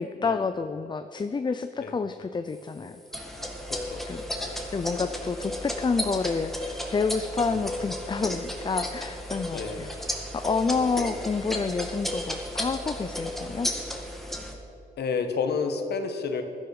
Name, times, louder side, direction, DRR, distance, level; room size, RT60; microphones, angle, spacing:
voice 1, 0.0-3.0 4.1-4.2 4.7-9.9 10.3-13.7, left 4 dB, 30° left, 9 dB, 0.5 m, -29 dB
sound 1, 3.1-14.5, equal, ahead, 1.9 m, -34 dB
voice 2, 3.7-4.0 4.3-4.6 7.4-7.7 9.5-9.9 10.7-11.0 15.0-16.4, left 5 dB, 85° left, 6 dB, 1.4 m, -31 dB
15.5 x 12.5 x 4.9 m, 2.8 s
cardioid pair, 105°, 17 cm